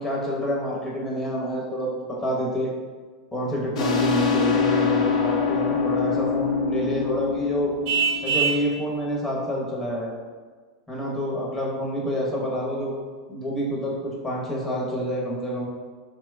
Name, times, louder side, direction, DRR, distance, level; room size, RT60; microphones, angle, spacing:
voice 1, 0.0-2.7 3.3-7.7 8.2-10.1 10.9-12.9 13.3-15.7, equal, 10° left, -4 dB, 0.8 m, -27 dB
sound 1, 3.7-9.1, left 6 dB, 75° left, 0.6 m, -25 dB
Vehicle horn car horn honking, 7.9-8.7, right 6 dB, 60° right, 0.5 m, -23 dB
2.8 x 2.2 x 3.2 m, 1.4 s
hypercardioid pair, 105°, 4 cm